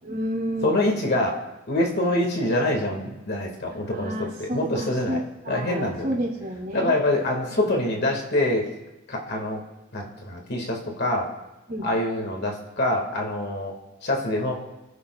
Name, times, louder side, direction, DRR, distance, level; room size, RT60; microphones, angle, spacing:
voice 1, 0.0-0.7 3.7-6.9 7.5-7.7 11.7-11.9, equal, 40° right, -9 dB, 2.9 m, -31 dB
voice 2, 0.6-1.4 1.7-5.2 5.5-6.2 6.7-8.7 9.1-9.6 9.9-11.3 11.8-13.7 14.0-14.5, left 1 dB, 55° left, 0 dB, 2.0 m, -25 dB
26.5 x 10.0 x 2.4 m, 1.0 s
head